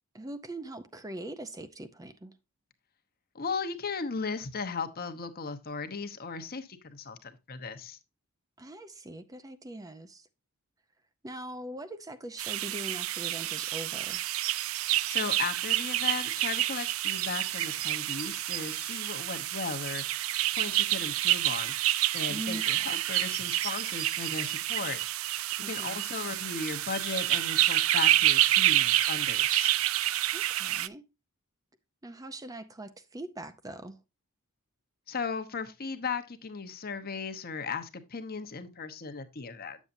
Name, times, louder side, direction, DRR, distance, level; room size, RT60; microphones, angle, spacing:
voice 1, 0.1-2.4 8.6-10.3 11.2-14.2 22.3-23.0 25.6-26.1 30.3-31.1 32.0-34.0, right 1 dB, 15° right, 0.5 m, -42 dB
voice 2, 3.3-8.0 15.1-21.8 22.1-25.0 25.7-29.7 35.1-39.8, left 4 dB, 45° left, 1.0 m, -36 dB
sound 1, 12.4-30.9, right 14 dB, 70° right, 0.4 m, -28 dB
9.2 x 7.3 x 2.6 m
head